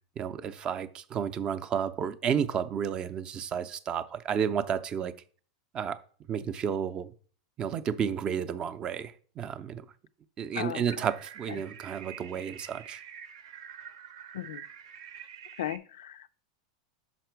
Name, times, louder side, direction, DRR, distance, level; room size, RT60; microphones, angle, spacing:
voice 1, 0.2-5.1 5.7-6.0 6.3-7.1 7.6-9.8 10.4-13.0, right 8 dB, 30° right, 0.5 m, -31 dB
sound 1, 10.9-15.8, right 8 dB, 70° right, 0.8 m, -46 dB
voice 2, 15.6-16.3, left 12 dB, 85° left, 0.4 m, -36 dB
5.8 x 5.0 x 4.5 m
supercardioid pair, 125°, 3 cm